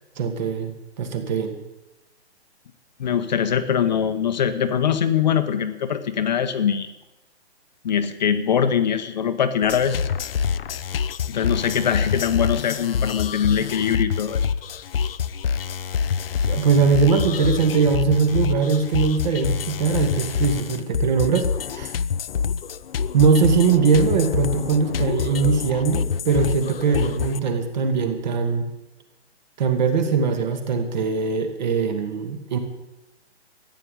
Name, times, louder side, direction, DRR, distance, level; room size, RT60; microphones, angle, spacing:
voice 1, 0.2-0.7 1.0-1.6 16.4-21.9 23.1-28.7 29.6-32.6, right 5 dB, 40° right, 6 dB, 2.2 m, -21 dB
voice 2, 3.0-6.9 7.8-10.1 11.3-14.4, left 8 dB, 40° left, 8 dB, 1.0 m, -22 dB
sound 1, 9.6-27.4, left 7 dB, 55° left, 0.7 m, -26 dB
14.5 x 9.7 x 8.6 m, 0.99 s
hypercardioid pair, 165°, 34 cm